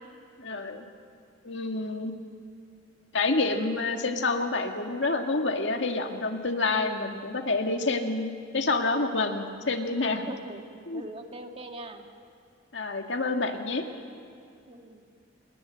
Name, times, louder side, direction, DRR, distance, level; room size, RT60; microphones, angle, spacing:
voice 1, 0.4-0.9 1.4-2.2 3.1-10.3 10.9-11.0 12.7-13.8, left 3 dB, 75° left, 4 dB, 2.0 m, -28 dB
voice 2, 6.6-7.1 10.2-10.6 10.9-12.1 14.7-15.0, right 1 dB, 30° right, 4 dB, 1.8 m, -42 dB
27.5 x 21.0 x 7.6 m, 2.4 s
head